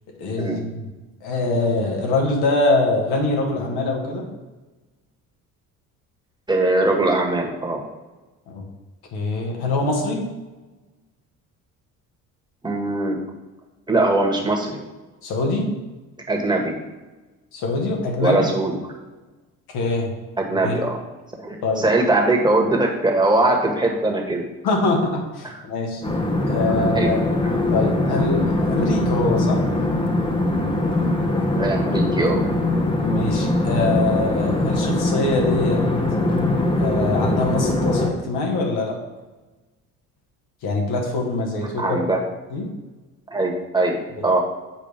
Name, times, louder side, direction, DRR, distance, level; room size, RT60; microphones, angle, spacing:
voice 1, 0.2-0.8 1.2-4.3 8.5-8.6 9.1-10.2 15.2-15.7 17.5-18.4 19.7-20.1 20.6-20.8 21.6-21.8 24.6-26.0 26.5-27.2 27.7-29.6 33.0-35.8 36.8-38.9 40.6-42.0 42.5-42.7 44.2-44.3, left 2 dB, 60° left, 0 dB, 1.8 m, -23 dB
voice 2, 6.5-7.8 12.6-13.2 13.9-14.8 16.3-16.7 18.2-18.7 20.4-21.0 21.4-24.4 26.8-27.1 31.6-32.4 41.8-42.2 43.3-44.0 44.2-44.4, right 2 dB, 10° right, 0 dB, 1.7 m, -21 dB
sound 1, 26.0-38.1, left 2 dB, 10° left, 1.1 m, -22 dB
7.4 x 4.9 x 3.5 m, 1.2 s
hypercardioid pair, 55°, 43 cm